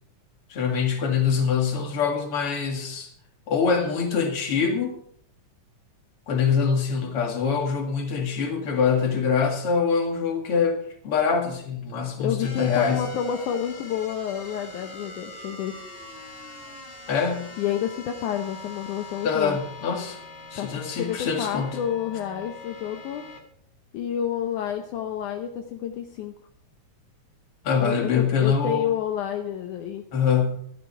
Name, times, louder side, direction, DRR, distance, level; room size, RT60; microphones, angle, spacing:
voice 1, 0.5-3.1 3.5-5.0 6.3-10.8 11.0-13.0 17.1-17.5 19.2-20.2 20.5-21.8 27.6-28.9 30.1-30.5, left 6 dB, 45° left, 3 dB, 2.8 m, -24 dB
voice 2, 12.2-15.8 17.6-19.6 20.6-23.3 23.9-26.3 27.8-30.0, left 9 dB, 75° left, 5 dB, 2.3 m, -29 dB
sound 1, 12.4-23.4, left 3 dB, 20° left, 1.7 m, -42 dB
14.0 x 12.0 x 4.8 m, 0.65 s
omnidirectional pair, 3.7 m